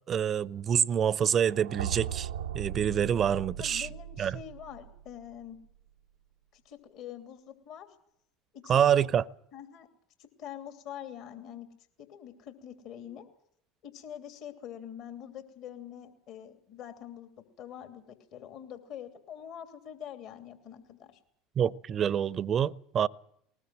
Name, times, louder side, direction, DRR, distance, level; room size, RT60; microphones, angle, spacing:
voice 1, 0.1-2.3 2.5-3.9 4.2-4.4 8.7-9.2 21.6-23.1, right 8 dB, 40° right, 0.8 m, -26 dB
sound 1, 1.4-5.4, right 9 dB, 80° right, 0.8 m, -38 dB
voice 2, 3.6-5.6 6.5-7.9 8.5-8.9 9.5-9.9 10.4-11.7 12.0-13.3 13.8-21.2, left 9 dB, 55° left, 3.0 m, -45 dB
20.5 x 20.0 x 7.8 m
hypercardioid pair, 70°, 0 cm